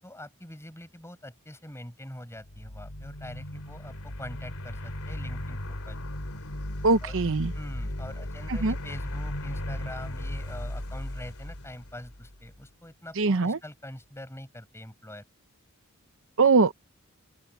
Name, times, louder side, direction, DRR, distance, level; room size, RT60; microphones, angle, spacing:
voice 1, 0.0-6.0 7.0-7.2 7.5-15.2, left 1 dB, 10° left, 6.9 m, -44 dB
sound 1, 2.4-12.6, left 1 dB, 75° left, 2.9 m, -36 dB
voice 2, 6.8-7.5 8.5-8.7 13.2-13.6 16.4-16.7, right 4 dB, 60° right, 0.8 m, -22 dB
open air
head